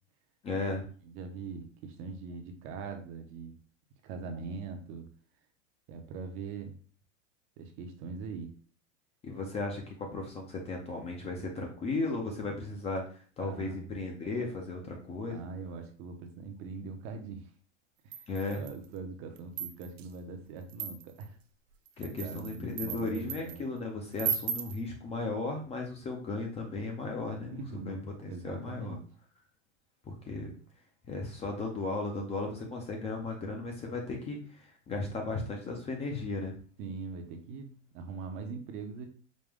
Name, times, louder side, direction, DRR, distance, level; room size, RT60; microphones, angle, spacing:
voice 1, 0.4-0.8 9.2-15.4 18.3-18.6 22.0-27.6 27.9-29.0 30.0-30.5 31.1-36.5, left 3 dB, 15° left, 2 dB, 0.5 m, -36 dB
voice 2, 1.0-3.6 4.0-5.1 5.9-6.8 7.6-8.5 13.4-13.8 15.3-17.5 18.0-18.2 18.5-21.4 22.2-23.7 27.4-29.0 36.8-39.1, right 4 dB, 35° right, 5 dB, 0.7 m, -42 dB
sound 1, 18.1-18.9 19.4-20.1 20.7-21.3 21.9-23.6 24.2-24.8, right 8 dB, 80° right, 0.7 m, -36 dB
5.1 x 2.2 x 3.5 m, 0.41 s
supercardioid pair, 140°, 37 cm